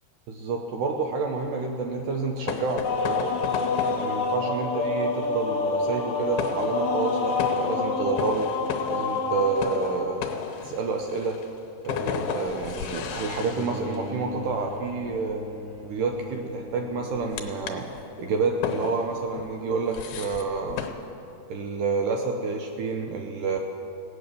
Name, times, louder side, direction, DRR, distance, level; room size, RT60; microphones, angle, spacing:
voice 1, 0.3-3.3 4.0-8.5 8.9-10.2 10.6-11.4 11.8-15.4 15.8-17.9 18.2-20.8 21.5-23.6, right 4 dB, 75° right, 3 dB, 2.0 m, -29 dB
sound 1, 1.4-20.9, left 8 dB, 75° left, 2.6 m, -36 dB
sound 2, 2.8-10.5, left 3 dB, 50° left, 1.8 m, -27 dB
Bowed string instrument, 13.1-18.3, left 1 dB, 60° right, 3.0 m, -41 dB
17.0 x 9.3 x 6.8 m, 2.7 s
omnidirectional pair, 4.5 m